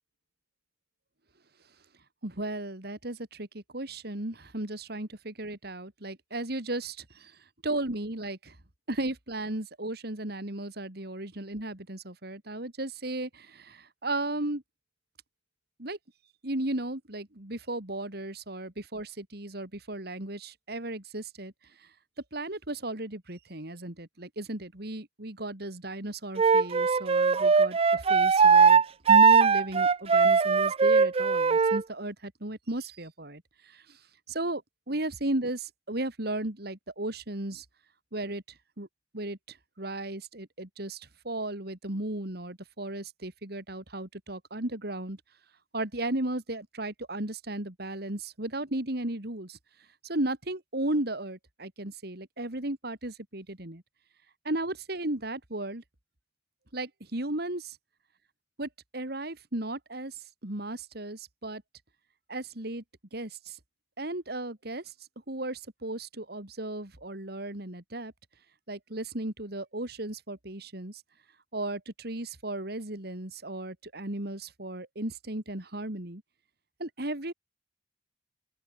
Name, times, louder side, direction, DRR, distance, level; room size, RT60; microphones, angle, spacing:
voice 1, 2.2-7.3 7.6-8.5 8.9-14.6 15.8-16.0 16.4-21.5 22.3-28.8 29.1-34.0 34.3-34.6 34.9-37.6 38.1-38.4 38.8-38.9 39.1-45.2 45.7-49.6 50.0-53.8 54.4-55.8 56.7-57.8 58.6-61.6 62.3-62.8 63.1-63.6 64.0-64.9 65.3-68.1 68.7-71.0 71.5-76.2 76.8-77.3, right 1 dB, 60° right, 3.2 m, -35 dB
Wind instrument woodwind instrument, 26.4-31.8, right 5 dB, 35° right, 0.5 m, -20 dB
open air
head